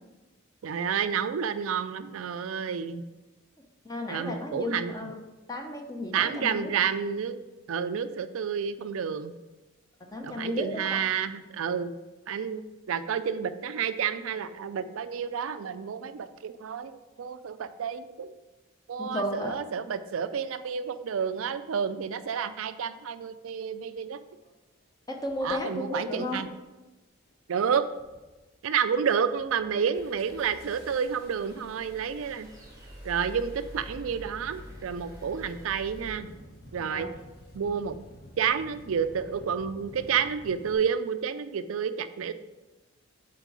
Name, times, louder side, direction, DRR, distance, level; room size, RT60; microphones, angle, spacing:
voice 1, 0.6-3.0 4.1-4.9 6.1-7.4 7.7-9.3 10.2-11.9 12.3-18.3 18.9-24.2 25.4-26.5 27.5-27.8 28.6-32.5 33.0-36.3 36.7-37.1 37.5-38.0 38.4-42.3, right 7 dB, 80° right, 11 dB, 0.4 m, -30 dB
voice 2, 3.8-5.1 5.5-6.7 10.0-10.8 19.0-19.5 25.1-26.4 36.8-37.1, left 1 dB, 20° left, 2 dB, 0.8 m, -33 dB
Engine starting, 24.4-24.5 25.2-25.6 26.3-26.6 26.9-27.5 27.9-28.5 28.8-29.0 29.4-40.8, equal, 50° left, 1.7 m, -52 dB
sound 1, 29.9-36.2, equal, 15° right, 0.9 m, -47 dB
7.4 x 4.5 x 4.8 m, 1.1 s
head